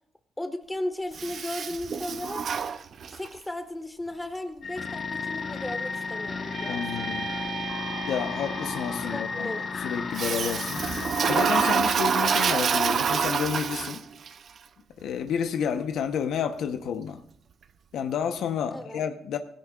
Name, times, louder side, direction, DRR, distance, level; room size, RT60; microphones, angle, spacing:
voice 1, 0.4-2.5 3.1-7.1 9.1-9.6 18.7-19.0, left 1 dB, 10° left, 7 dB, 1.5 m, -35 dB
Toilet flush, 1.1-3.4 10.1-14.3, right 6 dB, 55° right, 0.6 m, -26 dB
sound 1, 4.6-11.8, left 4 dB, 45° left, 1.2 m, -33 dB
sound 2, 5.3-9.6, right 7 dB, 70° right, 2.4 m, -40 dB
voice 2, 6.7-7.3 8.1-9.5 9.8-10.8 11.3-14.0 15.0-17.2 17.9-19.4, left 7 dB, 75° left, 7 dB, 0.9 m, -30 dB
17.5 x 16.0 x 2.4 m, 0.66 s
cardioid pair, 90°, 0 cm